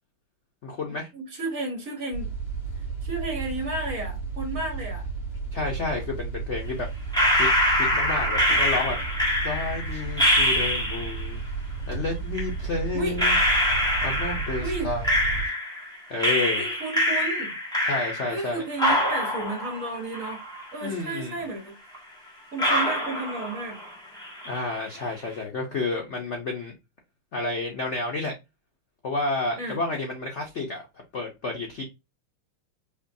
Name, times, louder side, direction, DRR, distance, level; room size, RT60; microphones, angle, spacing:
voice 1, 0.6-1.1 5.5-6.9 7.3-9.0 9.4-11.4 11.9-13.4 14.0-15.4 16.1-16.6 17.8-18.6 20.8-21.3 24.5-26.7 27.3-28.3 29.0-30.9 31.1-31.8, left 3 dB, 80° left, 0.6 m, -30 dB
voice 2, 1.1-2.3 3.0-5.0 12.9-13.2 14.6-14.9 16.6-17.6 18.3-20.4 20.7-21.8 22.5-23.8 29.6-29.8, right 2 dB, 40° right, 1.6 m, -32 dB
sound 1, 2.1-15.5, right 4 dB, 60° left, 2.7 m, -33 dB
sound 2, 7.1-11.3 12.3-12.4 13.2-15.9 16.2-18.5 18.8-20.8 21.2-21.3 21.9-22.0 22.6-23.9 24.2-24.7, equal, 5° left, 1.0 m, -24 dB
4.8 x 3.0 x 2.6 m
omnidirectional pair, 2.4 m